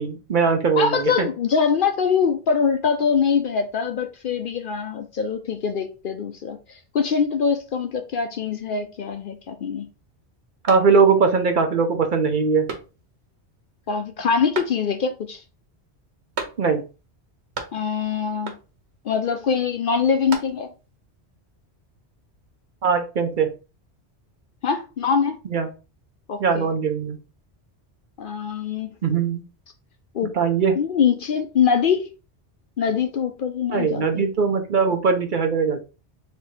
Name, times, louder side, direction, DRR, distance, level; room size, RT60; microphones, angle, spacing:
voice 1, 0.0-1.3 10.7-12.7 16.6-16.8 22.8-23.5 25.5-25.7 26.4-27.2 29.0-29.4 30.3-30.7 33.7-35.9, right 5 dB, 55° right, 0.7 m, -20 dB
voice 2, 0.8-9.9 13.9-15.4 17.7-18.5 19.0-20.7 24.6-25.4 26.3-26.7 28.2-28.9 30.1-30.4 30.8-32.1 32.8-34.3, left 6 dB, 60° left, 0.6 m, -23 dB
sound 1, 10.7-11.4 11.8-11.9 12.7-13.3 14.5-15.2 16.3-17.0 17.2-18.1 18.4-18.9 19.9-20.9, right 4 dB, 75° right, 1.3 m, -36 dB
3.4 x 2.9 x 4.6 m
omnidirectional pair, 1.1 m